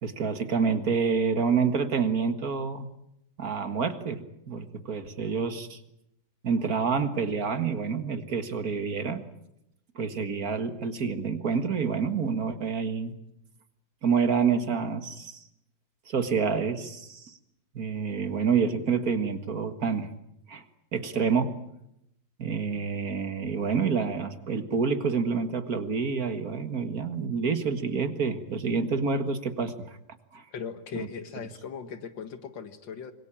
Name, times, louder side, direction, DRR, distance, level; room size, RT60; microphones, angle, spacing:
voice 1, 0.0-2.9 3.4-5.8 6.4-9.2 10.0-13.1 14.0-15.4 16.1-17.4 17.7-20.1 20.5-20.6 20.9-21.5 22.4-30.0 30.3-30.4 30.9-31.1, right 5 dB, 55° right, 10 dB, 2.1 m, -28 dB
voice 2, 30.5-33.1, left 6 dB, 80° left, 11 dB, 2.3 m, -38 dB
26.0 x 22.0 x 8.8 m, 0.79 s
omnidirectional pair, 2.0 m